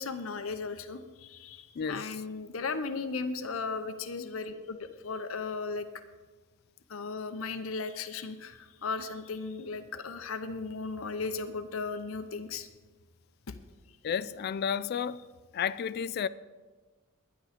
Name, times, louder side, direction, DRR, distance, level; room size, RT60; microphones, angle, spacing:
voice 1, 0.0-5.9 6.9-12.7 13.5-13.6, left 4 dB, 75° left, 0.7 m, -36 dB
voice 2, 1.8-2.1 14.0-15.2 15.5-16.3, left 7 dB, 50° left, 0.3 m, -32 dB
11.0 x 10.5 x 5.1 m
head